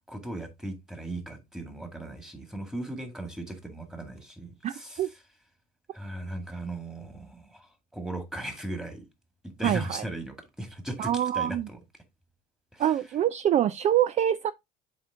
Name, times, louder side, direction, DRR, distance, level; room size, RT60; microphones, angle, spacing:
voice 1, 0.1-5.2 5.9-9.1 9.6-12.0 12.7-13.0, right 1 dB, 5° right, 2.0 m, -38 dB
voice 2, 4.6-5.1 9.6-10.0 11.0-11.6 12.8-14.5, right 11 dB, 40° right, 0.4 m, -25 dB
7.2 x 4.5 x 3.6 m
supercardioid pair, 95°, 18 cm